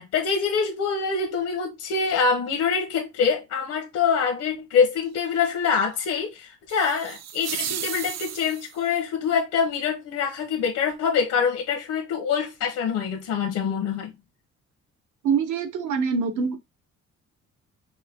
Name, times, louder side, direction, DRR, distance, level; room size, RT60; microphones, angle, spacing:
voice 1, 0.0-14.1, left 6 dB, 80° left, 1.1 m, -25 dB
sound 1, 6.7-8.9, right 10 dB, 60° right, 0.6 m, -34 dB
voice 2, 15.2-16.6, right 5 dB, 80° right, 1.1 m, -24 dB
5.5 x 2.3 x 3.6 m
cardioid pair, 90°, 30 cm